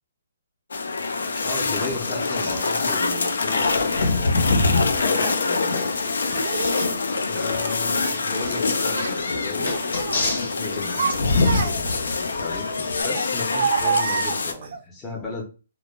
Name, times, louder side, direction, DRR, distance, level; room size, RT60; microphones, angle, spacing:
sound 1, 0.7-14.5, left 4 dB, 85° left, 0.4 m, -26 dB
voice 1, 1.4-5.9 7.3-9.8 10.1-15.4, left 3 dB, 10° left, 0.5 m, -35 dB
sound 2, 1.6-13.0, left 2 dB, 70° left, 0.8 m, -28 dB
Child speech kid speaking, 3.6-3.7 4.7-5.4 6.3-6.9 7.4-8.6 8.9-9.2 9.6-10.2 10.7-12.1 13.1-14.8, right 6 dB, 50° right, 0.3 m, -28 dB
2.1 x 2.0 x 3.1 m
hypercardioid pair, 170°, 0 cm